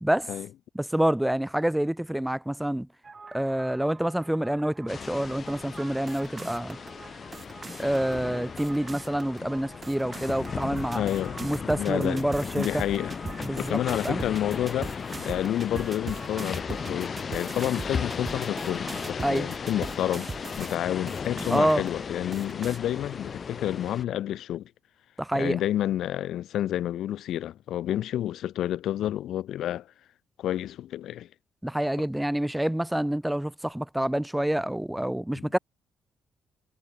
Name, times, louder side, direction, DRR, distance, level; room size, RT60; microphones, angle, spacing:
voice 1, 0.0-0.3 0.7-2.9 3.3-6.8 7.8-11.0 11.4-12.8 13.4-13.8 14.0-14.2 19.2-19.5 21.5-21.8 25.2-25.6 31.6-35.6, right 1 dB, 5° right, 0.4 m, -27 dB
sound 1, 3.0-20.8 21.1-21.9 22.3-22.8, right 4 dB, 30° right, 0.7 m, -42 dB
sound 2, 4.9-24.0, left 6 dB, 45° left, 2.9 m, -36 dB
voice 2, 10.9-12.3 12.5-13.1 13.6-14.9 15.2-20.3 20.6-24.7 25.3-29.9 30.4-31.3, left 12 dB, 80° left, 0.7 m, -29 dB
cardioid pair, 90°, 0 cm